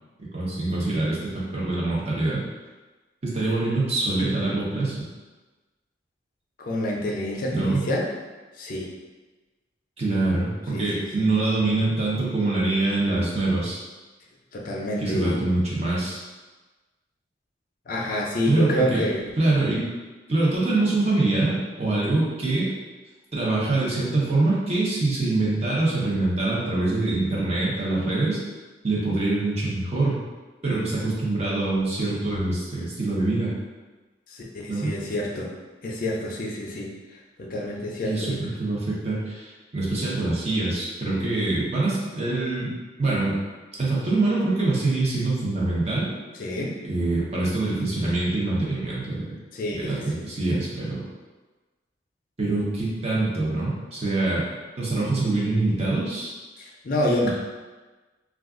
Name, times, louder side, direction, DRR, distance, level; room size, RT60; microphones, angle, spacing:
voice 1, 0.3-2.4 3.2-4.9 7.5-7.8 10.0-13.8 15.0-16.2 18.5-19.0 19.4-19.9 20.3-22.7 23.3-28.4 28.8-30.2 30.6-33.5 34.7-34.9 38.0-43.4 43.8-46.1 46.9-49.3 49.8-51.0 52.4-54.4 54.8-56.3 57.2-57.3, right 2 dB, 35° right, -6 dB, 0.7 m, -24 dB
voice 2, 6.6-8.1 8.6-8.9 10.7-11.1 14.5-15.4 17.9-19.2 34.3-35.5 35.8-38.4 46.4-46.8 49.5-50.3 56.6-57.3, left 1 dB, 50° left, -2 dB, 0.5 m, -28 dB
2.4 x 2.3 x 3.6 m, 1.2 s
head